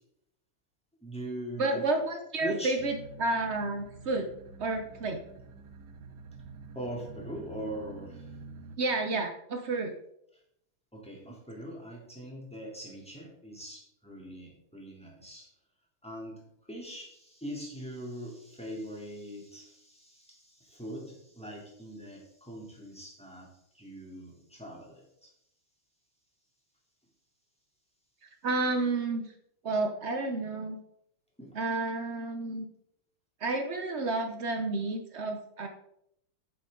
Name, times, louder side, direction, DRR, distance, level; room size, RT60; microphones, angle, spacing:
voice 1, 1.0-1.8 2.4-2.8 6.7-8.3 10.9-15.5 16.0-25.3 31.4-31.6, equal, 5° left, -3 dB, 2.8 m, -42 dB
voice 2, 1.6-4.3 4.6-5.2 8.8-9.9 28.2-29.3 29.6-30.8 31.5-32.7 33.4-35.7, right 3 dB, 90° right, 5 dB, 0.6 m, -31 dB
sound 1, 2.8-8.8, right 4 dB, 65° right, 1.1 m, -48 dB
10.0 x 7.2 x 3.8 m, 0.76 s
omnidirectional pair, 2.4 m